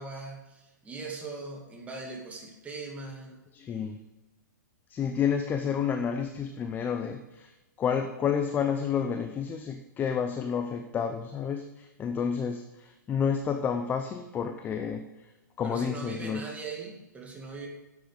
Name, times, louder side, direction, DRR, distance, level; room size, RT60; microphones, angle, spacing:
voice 1, 0.0-3.4 15.6-17.7, right 3 dB, 15° right, 1 dB, 2.2 m, -40 dB
voice 2, 3.5-4.0 4.9-7.5 7.8-15.1 15.6-16.5, left 7 dB, 20° left, 7 dB, 0.7 m, -30 dB
10.0 x 7.8 x 5.1 m, 1.1 s
hypercardioid pair, 130°, 10 cm